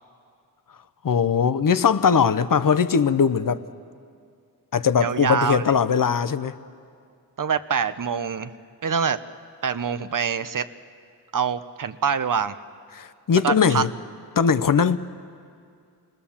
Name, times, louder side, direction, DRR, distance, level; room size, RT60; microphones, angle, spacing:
voice 1, 1.0-3.6 4.7-6.6 12.9-13.9 14.4-15.0, left 6 dB, 55° left, 0.8 m, -20 dB
voice 2, 5.0-5.7 7.4-8.5 8.8-9.2 9.6-10.7 11.3-12.5 13.4-13.8, right 6 dB, 55° right, 0.8 m, -25 dB
27.0 x 20.5 x 7.2 m
wide cardioid pair, 90°, 39 cm